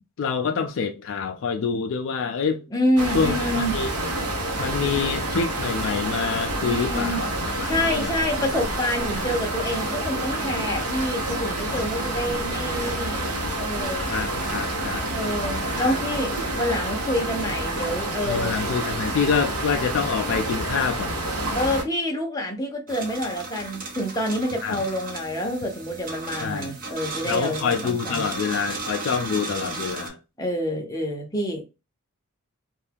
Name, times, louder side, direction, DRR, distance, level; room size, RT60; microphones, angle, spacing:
voice 1, 0.2-2.6 3.1-3.9 4.6-8.1 14.1-15.1 15.8-16.0 18.2-21.2 24.6-24.8 26.4-26.7 27.2-30.2, left 6 dB, 60° left, 0.3 m, -26 dB
voice 2, 2.7-3.7 6.6-7.2 7.6-13.3 13.6-14.1 15.1-18.6 21.5-28.3 30.4-31.7, left 1 dB, 15° left, 0.6 m, -27 dB
sound 1, 3.0-21.8, right 1 dB, 85° right, 0.9 m, -28 dB
sound 2, 22.9-30.1, right 3 dB, 40° right, 0.8 m, -35 dB
2.7 x 2.3 x 3.4 m
head